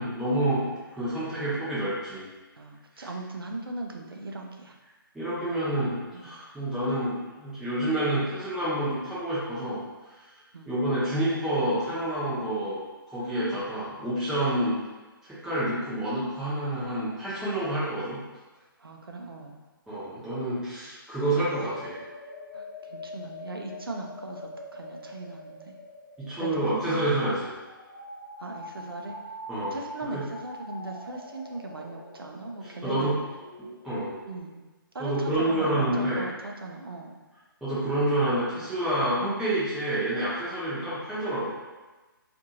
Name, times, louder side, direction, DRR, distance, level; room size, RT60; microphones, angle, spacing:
voice 1, 0.0-0.6 0.9-2.3 2.9-3.1 5.1-9.8 10.7-12.8 13.1-14.8 15.2-18.2 19.9-22.0 26.2-27.5 29.5-29.8 30.1-30.2 32.8-33.1 33.6-34.1 35.0-36.2 37.6-41.5, right 1 dB, 5° right, -12 dB, 0.8 m, -28 dB
voice 2, 2.6-4.8 6.1-6.3 10.5-10.7 18.8-19.6 22.5-25.7 26.4-26.6 26.9-27.0 28.4-29.2 29.7-33.1 34.3-34.6 34.9-37.2 39.2-39.5 40.8-41.0, right 2 dB, 85° right, 2 dB, 0.5 m, -39 dB
sound 1, 21.1-34.4, left 1 dB, 70° left, 0.8 m, -44 dB
2.6 x 2.5 x 2.8 m, 1.2 s
figure-of-eight pair, 140°, 12 cm